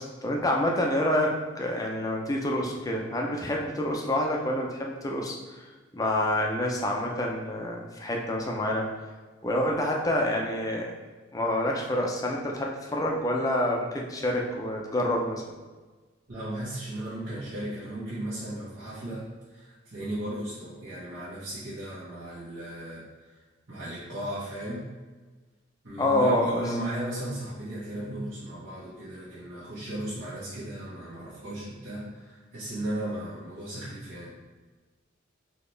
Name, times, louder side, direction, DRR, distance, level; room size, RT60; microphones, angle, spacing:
voice 1, 0.0-5.6 5.9-8.9 9.4-10.9 11.3-15.5 26.0-26.5, left 1 dB, 20° left, 0 dB, 0.5 m, -27 dB
voice 2, 16.3-23.4 23.7-24.9 25.8-34.3, right 1 dB, 85° right, -13 dB, 1.4 m, -36 dB
4.2 x 2.8 x 3.3 m, 1.3 s
head